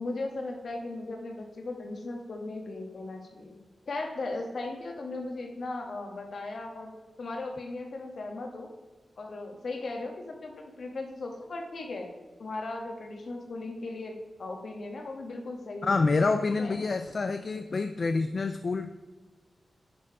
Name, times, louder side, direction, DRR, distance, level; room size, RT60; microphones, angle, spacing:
voice 1, 0.0-3.6 3.9-6.9 7.2-8.7 9.2-12.1 12.4-16.0 16.6-16.8, left 2 dB, 60° left, 3 dB, 1.4 m, -37 dB
voice 2, 15.8-18.9, left 3 dB, 45° left, 8 dB, 0.3 m, -27 dB
10.0 x 4.6 x 4.7 m, 1.3 s
wide cardioid pair, 130°, 0 cm